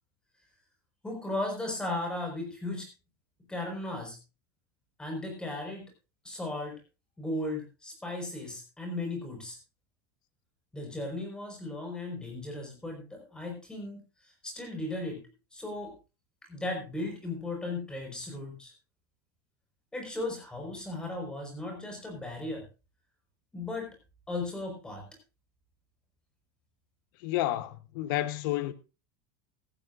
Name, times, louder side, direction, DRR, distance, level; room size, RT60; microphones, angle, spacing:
voice 1, 1.0-2.9 3.5-4.2 5.0-5.9 6.2-6.8 7.2-9.6 10.7-15.2 15.5-15.9 16.5-18.7 19.9-22.7 23.5-23.9 24.3-25.0, left 2 dB, 5° left, 5.1 m, -36 dB
voice 2, 27.2-28.7, left 15 dB, 60° left, 1.1 m, -30 dB
16.0 x 14.5 x 2.6 m
supercardioid pair, 160°, 13 cm